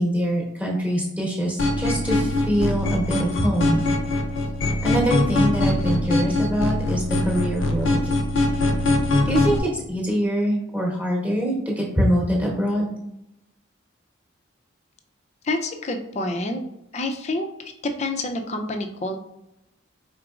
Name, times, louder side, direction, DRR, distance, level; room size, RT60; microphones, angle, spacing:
voice 1, 0.0-3.8 4.8-8.0 9.2-12.9, equal, 10° right, -3 dB, 1.0 m, -24 dB
sound 1, 1.6-9.6, left 2 dB, 75° left, 0.6 m, -22 dB
voice 2, 15.4-16.6 16.9-17.5 18.0-19.2, left 2 dB, 35° left, 5 dB, 0.5 m, -27 dB
4.9 x 3.8 x 2.4 m, 0.85 s
head